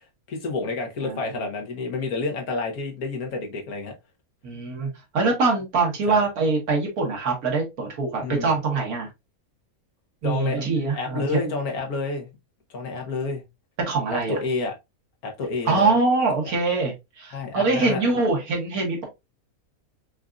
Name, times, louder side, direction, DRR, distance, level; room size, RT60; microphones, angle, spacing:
voice 1, 0.3-3.9 6.1-6.3 8.2-8.5 10.2-10.6 10.9-12.3 12.7-13.4 14.1-14.7 15.2-16.0 17.3-18.2, left 3 dB, 85° left, 1.5 m, -29 dB
voice 2, 4.4-9.1 10.2-11.2 13.9-14.4 15.7-19.0, right 3 dB, 85° right, 1.9 m, -23 dB
5.2 x 2.5 x 2.3 m
omnidirectional pair, 1.5 m